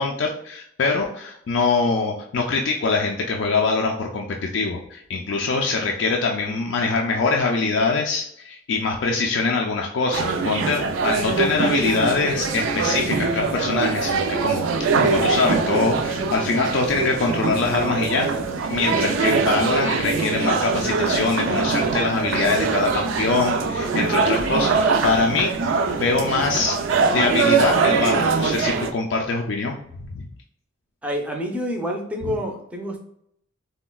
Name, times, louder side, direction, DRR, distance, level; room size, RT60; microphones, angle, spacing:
voice 1, 0.0-18.3 18.6-26.8 27.1-30.2 32.3-32.4, left 4 dB, 65° left, 0 dB, 0.4 m, -23 dB
sound 1, 10.1-28.9, right 4 dB, 75° right, 0.4 m, -23 dB
voice 2, 31.0-33.0, equal, 5° right, 1 dB, 0.4 m, -28 dB
3.8 x 2.1 x 2.2 m, 0.71 s
head